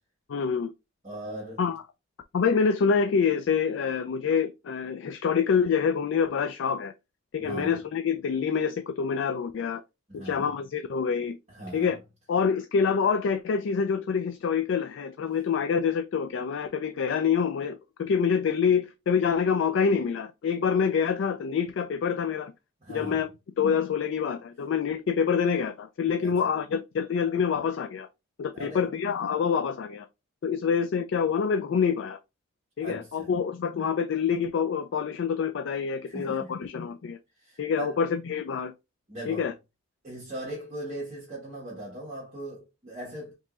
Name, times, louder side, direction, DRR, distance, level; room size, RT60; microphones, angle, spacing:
voice 1, 0.3-0.7 1.6-1.8 2.3-6.9 7.3-9.8 10.1-11.4 11.7-12.0 12.3-22.5 22.9-23.3 23.6-28.1 28.4-30.1 30.4-32.2 32.8-37.2 37.6-38.7 39.3-39.5, left 6 dB, 65° left, 0.3 m, -26 dB
voice 2, 1.0-1.6 7.4-7.8 10.1-10.5 11.5-11.9 22.8-23.2 26.2-26.5 28.5-28.9 32.8-33.3 36.0-36.5 37.3-38.0 39.1-39.5 40.0-43.3, right 1 dB, 35° right, 1.3 m, -39 dB
4.4 x 3.0 x 2.4 m
head